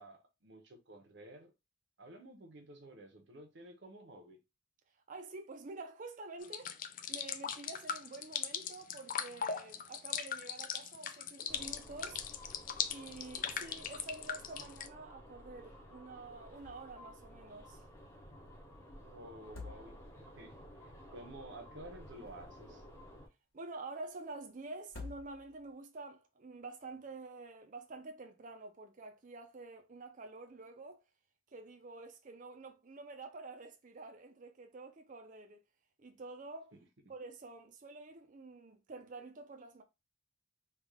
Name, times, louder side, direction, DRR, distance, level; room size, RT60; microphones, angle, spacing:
voice 1, 0.0-1.5 2.0-4.4 19.0-22.8, right 1 dB, 60° right, 0.8 m, -52 dB
voice 2, 4.9-12.2 12.9-17.9 23.5-31.0 31.5-35.6 36.0-36.7 37.1-39.8, right 3 dB, 40° right, 0.5 m, -48 dB
sound 1, 6.4-14.9, left 8 dB, 40° left, 0.3 m, -39 dB
sound 2, 11.5-23.3, equal, 10° left, 0.7 m, -54 dB
sound 3, 16.6-17.1 17.4-17.5 19.3-20.3 22.0-22.9 24.8-25.7, left 3 dB, 80° left, 1.4 m, -50 dB
3.4 x 2.4 x 3.5 m
head